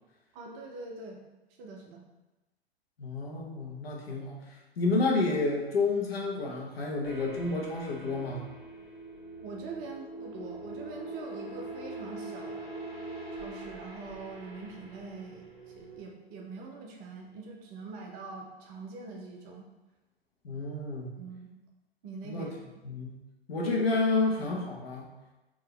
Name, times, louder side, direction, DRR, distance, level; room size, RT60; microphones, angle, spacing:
voice 1, 0.3-1.2 1.6-2.0 9.4-12.8 13.3-19.7 21.2-21.5 22.0-22.8, right 3 dB, 30° right, 1 dB, 0.6 m, -44 dB
voice 2, 3.0-4.5 4.8-8.5 20.4-21.1 22.2-22.5 22.8-23.2 23.5-25.1, left 3 dB, 70° left, -1 dB, 1.3 m, -30 dB
sound 1, 7.0-16.0, right 2 dB, 10° right, 1.4 m, -43 dB
4.8 x 3.0 x 3.3 m, 1.1 s
hypercardioid pair, 120°, 32 cm